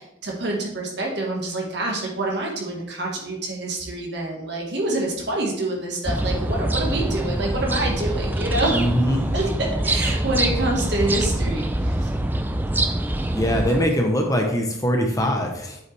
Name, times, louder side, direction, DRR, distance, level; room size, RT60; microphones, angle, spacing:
voice 1, 0.0-8.7 9.3-12.1, right 2 dB, 55° right, 0 dB, 1.6 m, -27 dB
sound 1, 6.1-13.9, right 1 dB, 10° right, 0.3 m, -24 dB
voice 2, 8.7-9.3 13.3-15.8, equal, 15° left, 2 dB, 0.7 m, -22 dB
7.7 x 5.5 x 3.3 m, 0.79 s
head